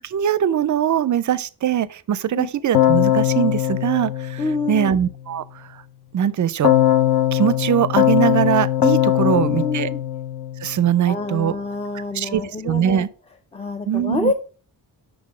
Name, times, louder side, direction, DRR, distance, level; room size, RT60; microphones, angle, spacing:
voice 1, 0.0-5.8 6.1-6.7 7.3-9.9 10.6-11.6 11.9-13.1 13.9-14.3, right 10 dB, 45° right, 0.5 m, -21 dB
Keyboard (musical), 2.7-5.1 6.6-10.9, left 12 dB, 65° left, 0.8 m, -20 dB
voice 2, 4.4-4.9 9.1-10.0 11.1-13.0 13.5-14.3, left 3 dB, 15° left, 0.5 m, -27 dB
6.0 x 3.8 x 4.9 m
cardioid pair, 85°, 42 cm